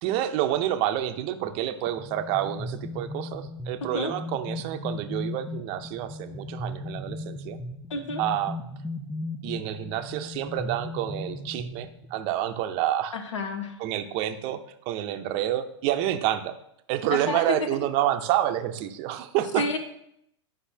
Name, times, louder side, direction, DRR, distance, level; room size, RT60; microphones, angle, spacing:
voice 1, 0.0-7.6 8.2-8.6 9.4-13.1 13.8-14.6 14.9-16.6 16.9-19.7, right 12 dB, 35° right, 9 dB, 0.6 m, -28 dB
sound 1, 1.9-12.3, left 2 dB, ahead, 0.4 m, -37 dB
voice 2, 7.9-8.2 13.1-13.8 17.1-17.5 19.6-19.8, left 3 dB, 80° left, 6 dB, 1.3 m, -30 dB
10.0 x 5.4 x 2.8 m, 0.75 s
hypercardioid pair, 140°, 15 cm